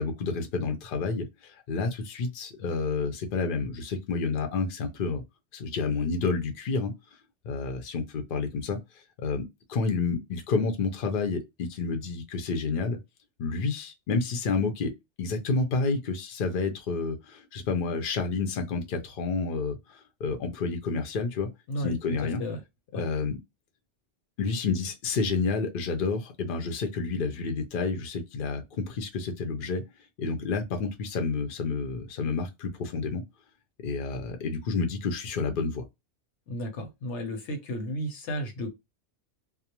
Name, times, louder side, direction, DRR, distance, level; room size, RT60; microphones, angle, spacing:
voice 1, 0.0-5.2 5.5-6.9 7.4-8.8 9.2-13.0 13.4-14.9 15.2-21.5 21.8-22.4 22.9-23.4 24.4-29.8 30.2-33.2 33.8-35.8, left 4 dB, 60° left, 0.7 m, -29 dB
voice 2, 21.7-22.6 22.9-23.0 36.5-38.7, equal, 80° left, 1.0 m, -33 dB
2.4 x 2.0 x 2.8 m
omnidirectional pair, 1.2 m